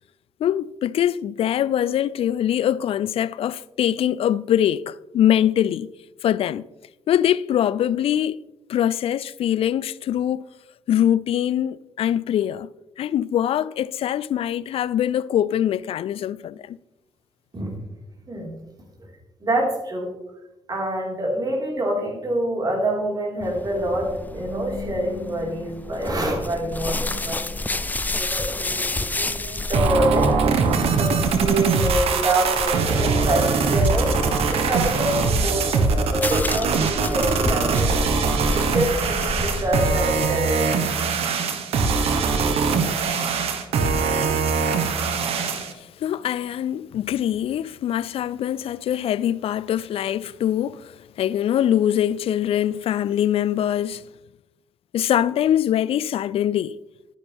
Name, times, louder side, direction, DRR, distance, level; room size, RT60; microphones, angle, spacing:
voice 1, 0.4-5.9 6.2-6.6 7.1-8.4 8.7-10.4 10.9-12.7 13.0-16.8 45.6-54.0 54.9-56.8, left 10 dB, 70° left, 0.4 m, -23 dB
voice 2, 19.4-20.1 20.7-40.8, right 1 dB, 40° right, 4.6 m, -26 dB
sound 1, 23.4-40.2, left 2 dB, 15° left, 0.6 m, -31 dB
sound 2, 29.7-45.7, right 5 dB, 80° right, 1.3 m, -22 dB
11.5 x 10.0 x 3.5 m
cardioid pair, 65°, 10 cm